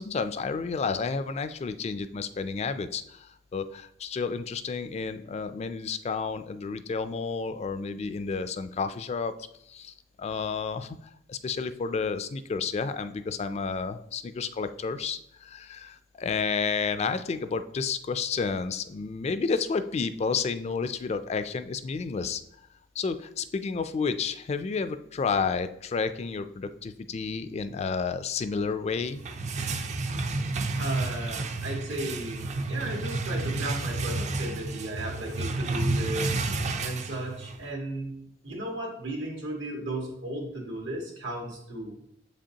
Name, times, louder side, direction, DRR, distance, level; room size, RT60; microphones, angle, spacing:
voice 1, 0.0-9.3 9.7-11.0 11.3-22.4 23.0-29.2, left 5 dB, 35° left, 11 dB, 0.3 m, -31 dB
sound 1, 29.0-37.7, right 3 dB, 40° right, 0.4 m, -31 dB
voice 2, 30.8-36.4 36.8-38.2 38.4-42.0, right 1 dB, 85° right, -1 dB, 1.7 m, -35 dB
7.2 x 5.1 x 2.8 m, 0.76 s
head